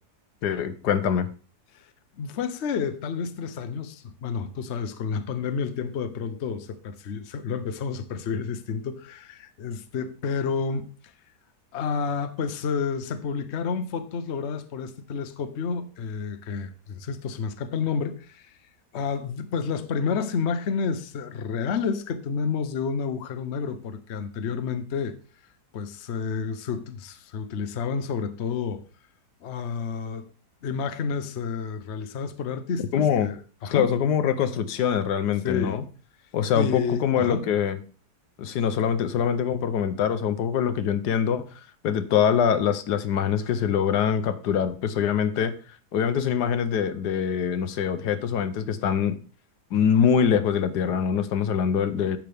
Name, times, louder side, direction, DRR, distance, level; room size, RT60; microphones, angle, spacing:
voice 1, 0.4-1.3 32.9-33.3 33.7-35.8 36.3-37.8 38.4-41.5 41.8-45.5 45.9-49.2 49.7-52.2, left 8 dB, 80° left, 1.4 m, -24 dB
voice 2, 2.2-10.9 11.7-18.5 18.9-25.2 25.7-28.8 29.4-30.3 30.6-33.9 35.4-35.8 36.5-37.4, left 6 dB, 50° left, 1.0 m, -30 dB
10.5 x 7.5 x 3.4 m
omnidirectional pair, 1.7 m